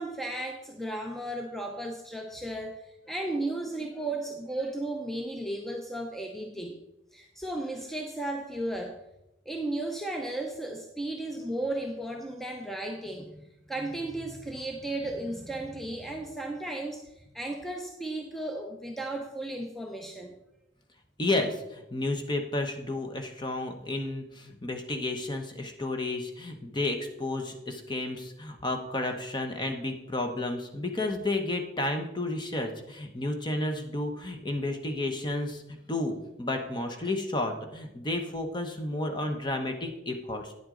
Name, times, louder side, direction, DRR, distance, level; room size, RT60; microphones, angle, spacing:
voice 1, 0.0-6.8 7.1-9.0 9.5-20.3, right 1 dB, ahead, 2 dB, 0.6 m, -35 dB
voice 2, 21.2-40.5, left 2 dB, 25° left, 5 dB, 0.9 m, -32 dB
9.5 x 7.8 x 3.8 m, 0.90 s
head